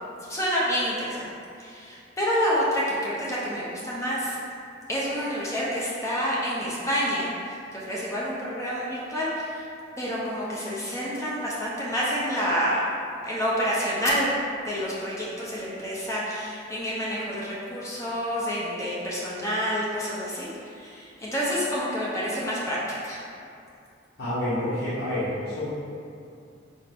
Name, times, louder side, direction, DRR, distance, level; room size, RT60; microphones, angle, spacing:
voice 1, 0.2-1.2 1.6-4.4 4.9-9.7 10.0-12.8 13.2-14.3 14.6-20.5 20.7-22.8 23.0-23.2, equal, 15° left, -7 dB, 0.5 m, -28 dB
voice 2, 24.2-25.7, left 1 dB, 65° left, -14 dB, 0.9 m, -28 dB
4.1 x 2.5 x 3.3 m, 2.5 s
head